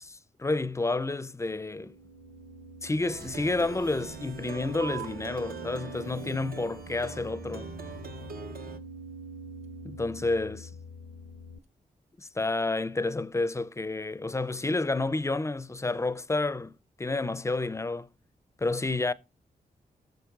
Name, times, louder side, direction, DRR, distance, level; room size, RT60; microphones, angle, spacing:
voice 1, 0.0-2.0 2.8-7.7 9.8-10.7 12.2-16.7 17.0-18.1 18.6-19.1, left 2 dB, 20° left, 0.5 m, -30 dB
sound 1, 1.5-11.6, equal, 65° left, 0.5 m, -46 dB
Plucked string instrument, 3.0-8.8, right 5 dB, 75° right, 0.9 m, -43 dB
sound 2, 4.8-11.8, right 17 dB, 50° right, 1.0 m, -50 dB
19.5 x 6.7 x 2.4 m
wide cardioid pair, 90°, 15 cm